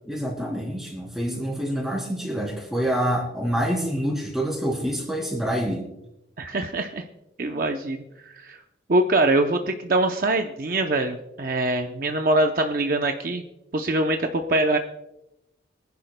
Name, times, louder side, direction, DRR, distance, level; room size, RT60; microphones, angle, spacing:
voice 1, 0.0-5.9, equal, ahead, -1 dB, 3.4 m, -27 dB
voice 2, 6.4-7.0 7.4-8.6 8.9-13.4 13.7-14.8, right 2 dB, 50° right, 5 dB, 0.6 m, -23 dB
24.0 x 10.5 x 2.2 m, 0.92 s
head